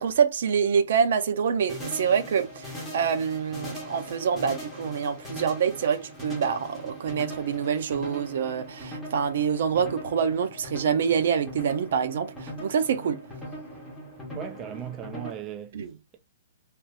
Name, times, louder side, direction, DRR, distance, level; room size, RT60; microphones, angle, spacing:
voice 1, 0.0-13.2 15.7-15.9, right 7 dB, 65° right, 0.7 m, -26 dB
sound 1, 1.7-15.3, equal, 5° left, 1.3 m, -40 dB
voice 2, 14.3-15.9, right 10 dB, 20° right, 0.3 m, -37 dB
3.5 x 2.8 x 2.6 m
hypercardioid pair, 155°, 0 cm